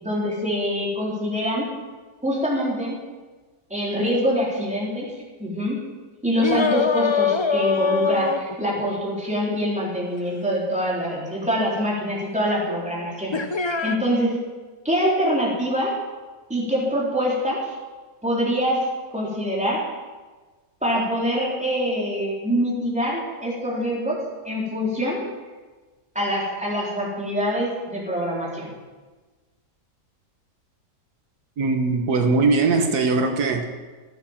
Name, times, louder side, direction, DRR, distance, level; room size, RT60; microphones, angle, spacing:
voice 1, 0.0-1.7 2.2-3.0 3.7-5.1 5.4-5.8 6.2-14.4 14.8-15.9 16.5-17.6 18.2-18.9 19.1-19.8 20.8-24.2 24.4-25.2 26.2-28.7, equal, 5° right, -5 dB, 3.8 m, -24 dB
sound 1, 6.4-9.0 11.6-11.7 13.3-14.0, left 5 dB, 45° left, 0.3 m, -23 dB
voice 2, 31.6-33.6, right 3 dB, 80° right, 4 dB, 1.7 m, -20 dB
15.0 x 9.7 x 7.2 m, 1.3 s
omnidirectional pair, 1.6 m